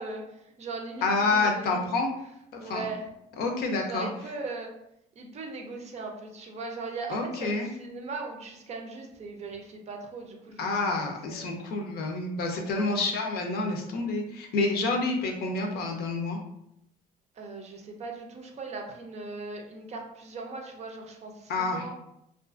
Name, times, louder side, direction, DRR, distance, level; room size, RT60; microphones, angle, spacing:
voice 1, 0.0-1.8 2.6-3.1 3.8-4.7 5.2-11.5 12.6-13.0 17.4-21.9, right 3 dB, 40° right, 2 dB, 0.5 m, -39 dB
voice 2, 1.0-2.1 2.5-2.9 3.4-4.1 7.1-7.7 10.6-16.4 21.5-21.9, left 3 dB, 65° left, 2 dB, 0.5 m, -28 dB
2.4 x 2.4 x 2.4 m, 0.81 s
cardioid pair, 110°, 17 cm